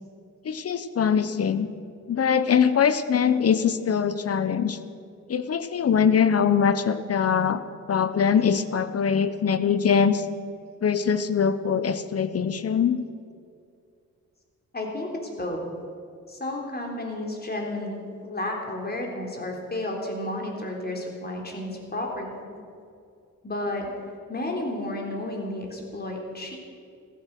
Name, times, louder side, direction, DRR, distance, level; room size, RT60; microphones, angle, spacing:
voice 1, 0.4-1.7 2.1-4.8 5.3-7.6 7.9-10.2 10.8-13.0, left 7 dB, 50° left, 13 dB, 1.0 m, -22 dB
voice 2, 14.7-15.6 16.3-22.6 23.4-23.9 24.3-26.6, left 1 dB, 30° left, 1 dB, 3.7 m, -32 dB
15.0 x 14.5 x 6.1 m, 2.4 s
cardioid pair, 85°, 32 cm